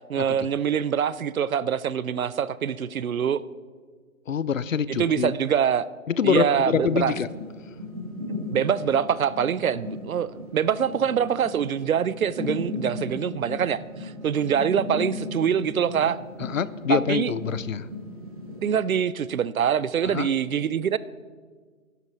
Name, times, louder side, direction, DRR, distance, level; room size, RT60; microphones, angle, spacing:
voice 1, 0.1-3.4 4.9-5.9 6.2-7.1 8.5-16.2 16.9-17.3 18.6-21.0, right 8 dB, 75° right, 18 dB, 0.6 m, -24 dB
voice 2, 4.3-5.3 6.1-7.3 16.4-17.9 20.1-20.3, left 7 dB, 70° left, 18 dB, 0.6 m, -25 dB
sound 1, 6.5-18.6, left 2 dB, 25° right, 2.0 m, -37 dB
11.5 x 10.5 x 4.7 m, 1.5 s
hypercardioid pair, 175°, 42 cm